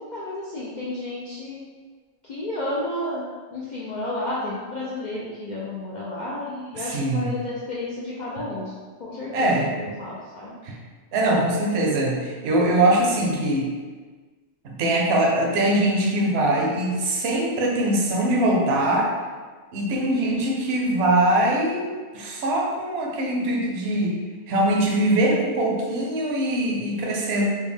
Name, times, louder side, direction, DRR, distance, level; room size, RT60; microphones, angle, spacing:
voice 1, 0.0-1.6 2.2-3.2 3.5-8.7 9.0-10.5 20.1-20.3, left 1 dB, 70° left, -7 dB, 0.4 m, -32 dB
voice 2, 6.7-7.3 9.3-9.7 10.6-10.8 11.1-13.7 14.6-19.1 19.7-24.2 24.5-27.5, right 1 dB, 60° right, -1 dB, 0.8 m, -22 dB
3.3 x 2.1 x 3.4 m, 1.5 s
omnidirectional pair, 1.4 m